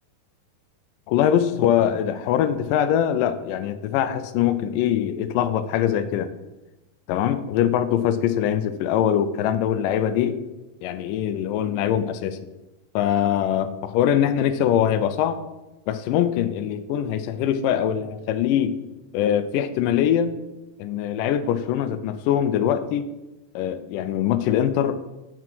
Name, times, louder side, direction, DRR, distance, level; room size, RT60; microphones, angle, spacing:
voice 1, 1.1-6.3 7.1-10.4 10.8-12.4 13.0-15.4 15.9-18.8 19.1-20.3 20.8-23.0 23.6-25.0, left 10 dB, 85° left, 11 dB, 2.2 m, -22 dB
7.7 x 4.6 x 6.0 m, 1.0 s
omnidirectional pair, 3.9 m